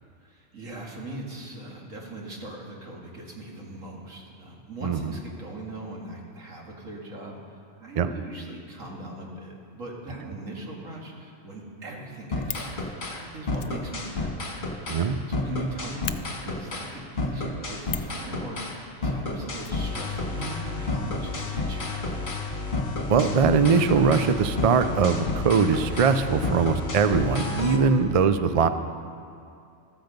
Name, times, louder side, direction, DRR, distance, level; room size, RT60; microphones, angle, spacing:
voice 1, 0.2-7.4 7.8-14.6 15.3-16.1 16.4-22.1, right 1 dB, 90° right, -1 dB, 2.4 m, -40 dB
Fire, 12.0-12.7 13.5-15.3 15.6-15.7 16.0-16.2 17.8-18.2 19.6-20.5 20.7-20.8 21.1-21.2, left 11 dB, 75° left, 1.0 m, -38 dB
sound 1, 12.3-13.2 13.5-15.1 15.3-16.9 17.2-18.8 19.0-27.8, left 3 dB, 40° left, 1.7 m, -30 dB
voice 2, 14.9-15.2 23.1-28.7, right 5 dB, 50° right, 10 dB, 0.4 m, -21 dB
13.5 x 13.5 x 5.3 m, 2.4 s
omnidirectional pair, 1.3 m